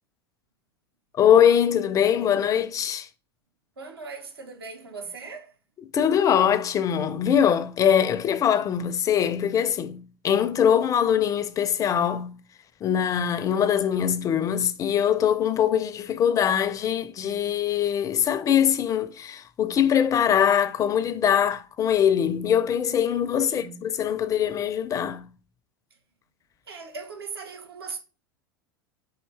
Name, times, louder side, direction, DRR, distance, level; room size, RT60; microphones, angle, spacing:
voice 1, 1.2-3.1 5.9-12.3 12.8-25.3, left 9 dB, 25° left, 0.5 m, -22 dB
voice 2, 3.8-5.5 23.4-23.8 26.7-28.0, right 5 dB, 80° right, 0.9 m, -39 dB
4.6 x 2.6 x 3.2 m
figure-of-eight pair, 85°, 13 cm